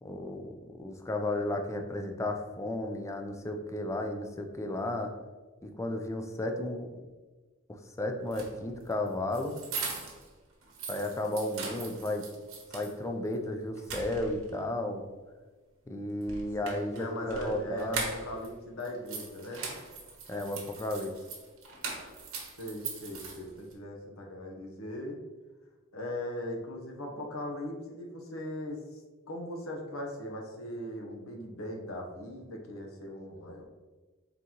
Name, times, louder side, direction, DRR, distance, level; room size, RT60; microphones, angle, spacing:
voice 1, 0.0-5.1 5.6-6.9 7.7-9.5 10.9-12.2 12.7-15.0 15.9-18.0 20.3-21.1, left 1 dB, 15° left, 4 dB, 0.4 m, -33 dB
sound 1, 8.2-10.3 10.6-12.9 13.3-13.4 13.8-14.6 16.2-18.5 18.8-23.7, right 4 dB, 75° right, 1.0 m, -40 dB
voice 2, 16.6-19.7 22.6-25.2 25.9-29.0 29.3-33.7, left 1 dB, 85° left, 1 dB, 0.8 m, -39 dB
3.8 x 3.7 x 2.9 m, 1.3 s
head